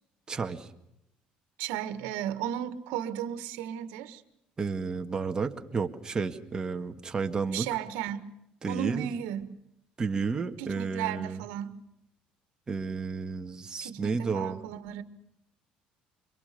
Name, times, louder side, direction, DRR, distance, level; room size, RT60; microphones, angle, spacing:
voice 1, 0.3-0.7 4.6-7.7 8.6-9.1 10.0-11.4 12.7-14.6, right 4 dB, 25° right, 6 dB, 1.9 m, -32 dB
voice 2, 1.6-4.2 7.5-8.3 8.7-9.5 10.6-11.8 13.8-15.0, right 10 dB, 90° right, 11 dB, 1.6 m, -34 dB
26.0 x 22.5 x 6.9 m, 0.80 s
cardioid pair, 110°, 3 cm